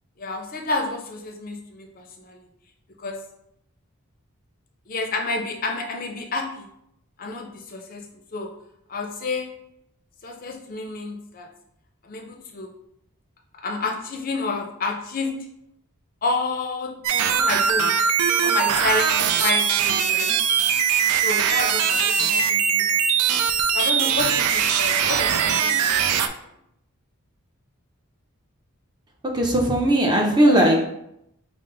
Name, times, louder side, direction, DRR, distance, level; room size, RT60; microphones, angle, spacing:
voice 1, 0.2-2.4 3.0-3.2 4.9-6.7 7.2-8.1 8.3-8.5 8.9-9.5 10.2-11.5 12.0-12.7 13.6-15.3 16.2-17.9 18.4-20.3 21.2-23.4 23.7-25.9 30.4-30.7, left 3 dB, 40° left, 2 dB, 0.5 m, -29 dB
sound 1, 17.0-26.3, right 7 dB, 85° right, 0.4 m, -21 dB
voice 2, 29.2-30.9, right 1 dB, 20° right, 1 dB, 0.6 m, -18 dB
5.7 x 2.0 x 3.8 m, 0.77 s
head